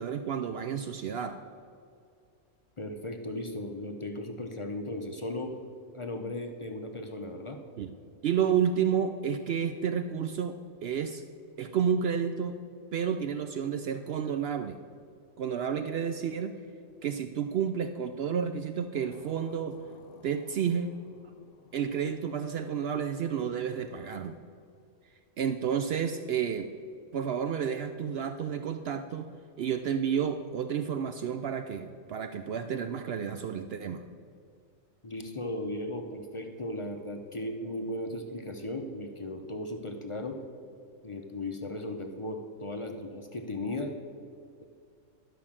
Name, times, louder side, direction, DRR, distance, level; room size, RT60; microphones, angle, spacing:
voice 1, 0.0-1.4 7.8-7.9 8.2-11.2 11.6-12.5 12.9-14.8 15.4-16.6 17.0-19.8 20.2-20.9 21.7-24.4 25.4-26.7 27.1-34.0, right 7 dB, 80° right, 8 dB, 0.5 m, -31 dB
voice 2, 2.8-5.6 5.9-7.6 35.0-40.4 41.0-43.9, left 1 dB, 35° left, 4 dB, 0.5 m, -36 dB
sound 1, 18.9-24.0, left 7 dB, 70° left, 1.1 m, -54 dB
12.0 x 5.7 x 7.2 m, 2.3 s
omnidirectional pair, 1.6 m